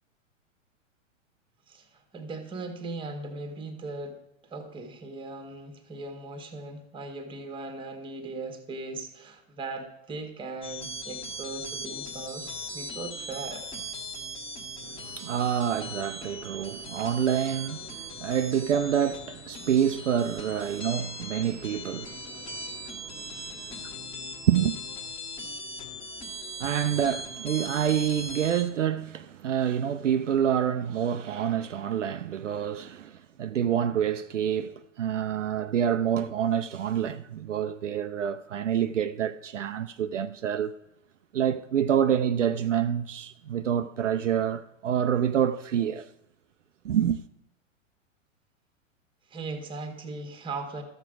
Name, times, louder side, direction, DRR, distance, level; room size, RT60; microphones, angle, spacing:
voice 1, 1.7-13.6 49.3-50.8, right 3 dB, 15° right, 1.3 m, -38 dB
sound 1, 10.6-28.6, equal, 15° left, 1.4 m, -39 dB
voice 2, 14.8-24.0 24.5-24.8 26.6-40.7 41.3-46.1 46.8-47.2, right 9 dB, 70° right, 0.6 m, -27 dB
12.5 x 7.4 x 5.0 m
figure-of-eight pair, 105°, 39 cm